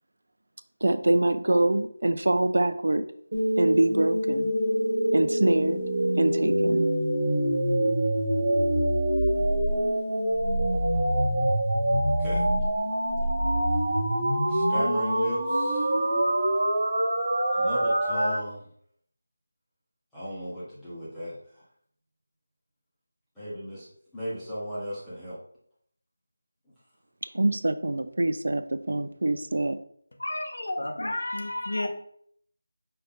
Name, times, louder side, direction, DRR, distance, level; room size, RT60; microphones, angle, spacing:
voice 1, 0.8-3.1 3.6-4.5 5.1-5.8 6.2-6.9 27.3-29.8, right 2 dB, 75° right, 11 dB, 0.4 m, -24 dB
sound 1, 3.3-18.3, right 1 dB, 35° right, 1.5 m, -25 dB
voice 2, 14.5-15.9 17.5-18.6 20.1-21.6 23.4-23.9 24.1-25.4, equal, ahead, -13 dB, 0.8 m, -35 dB
voice 3, 30.2-31.9, left 1 dB, 75° left, 5 dB, 0.9 m, -31 dB
5.5 x 2.6 x 3.5 m, 0.65 s
figure-of-eight pair, 180°, 0 cm